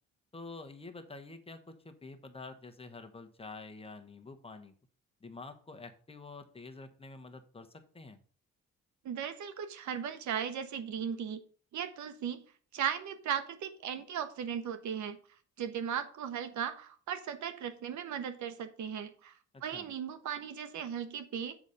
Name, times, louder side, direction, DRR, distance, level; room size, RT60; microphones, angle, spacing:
voice 1, 0.3-4.7 5.2-8.2 19.5-19.9, left 3 dB, 20° left, 6 dB, 1.2 m, -48 dB
voice 2, 9.0-11.4 11.7-12.4 12.7-15.2 15.6-19.3 19.6-21.6, right 8 dB, 70° right, 10 dB, 1.1 m, -37 dB
7.2 x 4.1 x 6.6 m, 0.43 s
cardioid pair, 90°, 30 cm